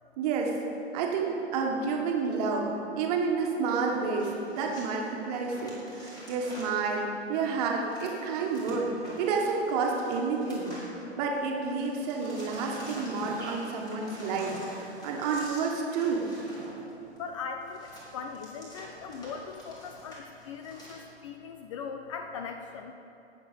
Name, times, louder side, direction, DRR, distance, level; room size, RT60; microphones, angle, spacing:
voice 1, 0.2-0.6 0.9-2.7 3.0-8.9 9.2-10.7 11.2-16.3, right 4 dB, 35° right, 0 dB, 1.7 m, -30 dB
sound 1, 3.7-11.4 11.7-20.9, equal, 10° left, 2.7 m, -46 dB
voice 2, 17.2-22.9, left 5 dB, 30° left, 5 dB, 0.5 m, -40 dB
18.0 x 6.8 x 5.2 m, 2.9 s
figure-of-eight pair, 110°, 34 cm